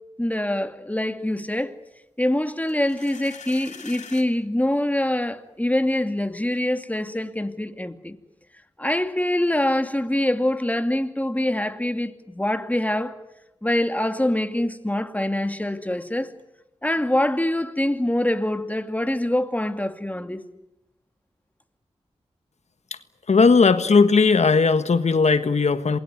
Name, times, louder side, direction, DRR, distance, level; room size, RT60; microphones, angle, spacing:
voice 1, 0.2-1.7 2.2-8.2 8.8-13.2 13.6-16.3 16.8-20.4, left 1 dB, 10° left, 2.6 m, -24 dB
sound 1, 2.7-4.3, left 6 dB, 85° left, 2.6 m, -42 dB
voice 2, 23.3-26.0, left 4 dB, 70° left, 1.5 m, -17 dB
27.5 x 21.5 x 9.6 m
cardioid pair, 40°, 12 cm